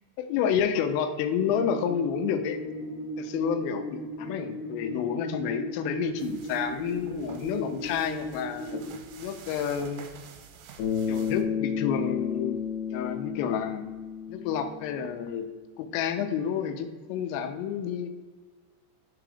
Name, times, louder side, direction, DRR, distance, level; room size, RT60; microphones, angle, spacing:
voice 1, 0.2-2.6 3.2-8.8 9.2-10.1 11.1-12.6 12.9-13.8 14.3-15.5 15.8-18.1, left 8 dB, 85° left, 8 dB, 3.2 m, -29 dB
sound 1, 1.4-8.9, equal, 45° left, 2.0 m, -37 dB
sound 2, 6.2-11.4, right 7 dB, 85° right, 3.2 m, -49 dB
Bass guitar, 10.8-15.2, left 7 dB, 65° left, 3.1 m, -31 dB
6.8 x 3.8 x 4.8 m, 1.4 s
omnidirectional pair, 5.8 m